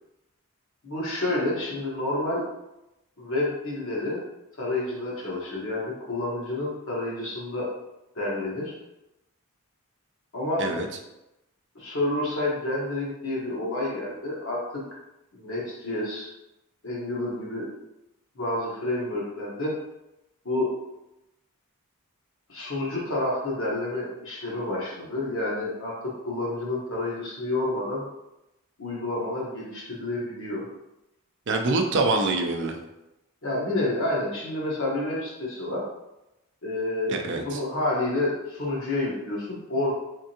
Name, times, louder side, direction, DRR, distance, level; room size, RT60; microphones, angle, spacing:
voice 1, 0.8-2.4 3.2-4.2 4.6-7.7 8.1-8.8 10.3-10.7 11.7-14.8 15.3-16.3 16.8-17.7 18.3-19.7 20.4-20.7 22.5-28.0 28.8-30.6 33.4-35.8 36.6-37.2 37.4-39.9, left 2 dB, 65° left, -5 dB, 1.2 m, -29 dB
voice 2, 31.5-32.8 37.1-37.6, right 3 dB, 55° right, 3 dB, 0.5 m, -25 dB
3.6 x 3.4 x 2.8 m, 0.93 s
head